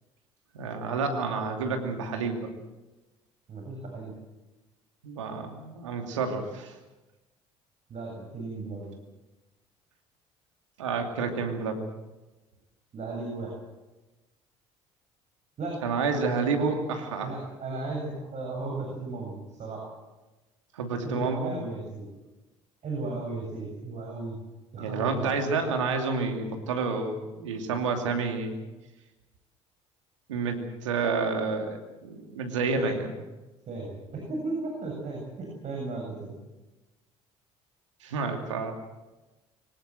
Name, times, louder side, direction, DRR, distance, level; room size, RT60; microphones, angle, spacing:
voice 1, 0.5-2.5 5.0-6.7 10.8-11.9 15.8-17.3 20.7-21.6 24.8-28.5 30.3-33.1 38.0-38.7, right 4 dB, 85° right, 4 dB, 2.7 m, -29 dB
voice 2, 3.5-4.1 7.9-8.9 12.9-13.5 15.6-15.8 16.3-16.7 17.2-19.9 21.0-22.1 22.8-24.4 24.7-25.2 32.8-32.9 33.7-36.4, right 3 dB, 50° right, 0 dB, 7.5 m, -35 dB
24.0 x 18.0 x 7.8 m, 1.1 s
hypercardioid pair, 55°, 15 cm